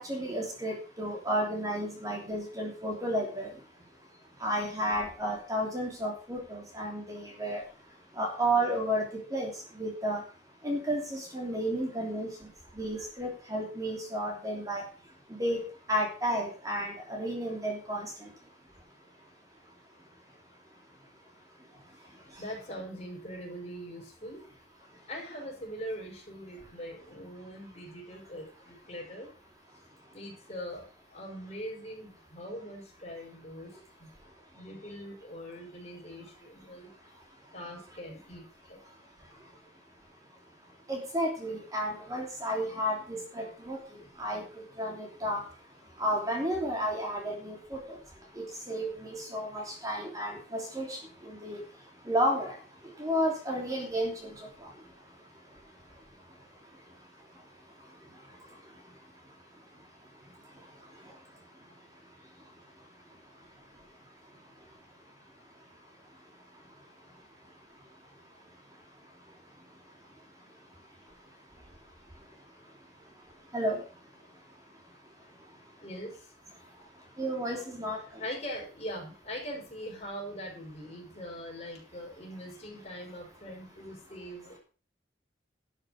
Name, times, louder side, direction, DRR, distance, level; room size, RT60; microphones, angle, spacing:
voice 1, 0.0-3.5 4.4-7.6 8.2-9.0 9.3-9.5 9.8-10.2 10.6-12.3 12.8-14.8 15.4-15.6 15.9-18.1 40.9-43.8 44.2-44.4 44.8-45.4 46.0-48.0 48.4-51.0 51.2-51.6 52.1-52.5 53.0-54.3 73.5-73.8 77.2-78.0, equal, 20° right, 0 dB, 3.1 m, -32 dB
voice 2, 22.4-24.4 25.1-29.3 30.1-30.8 31.1-33.7 34.0-34.1 34.5-36.9 37.5-38.8 75.8-76.1 78.2-84.6, equal, 35° left, 0 dB, 5.5 m, -42 dB
12.0 x 7.3 x 6.5 m, 0.37 s
head